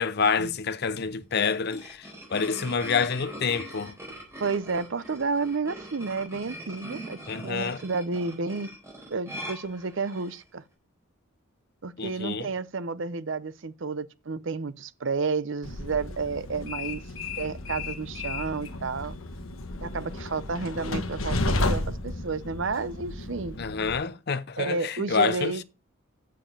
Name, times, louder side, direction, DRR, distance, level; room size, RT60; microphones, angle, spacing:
voice 1, 0.0-3.9 7.3-7.8 12.0-12.5 23.6-25.6, left 5 dB, 50° left, 0.6 m, -28 dB
sound 1, 1.1-10.4, right 1 dB, 15° right, 4.2 m, -42 dB
voice 2, 4.4-8.7 9.1-10.6 11.8-17.0 17.4-19.2 19.8-23.6 24.6-25.6, right 4 dB, 60° right, 0.7 m, -31 dB
Train, 15.6-24.0, left 2 dB, 80° left, 1.2 m, -32 dB
7.6 x 7.0 x 5.4 m
head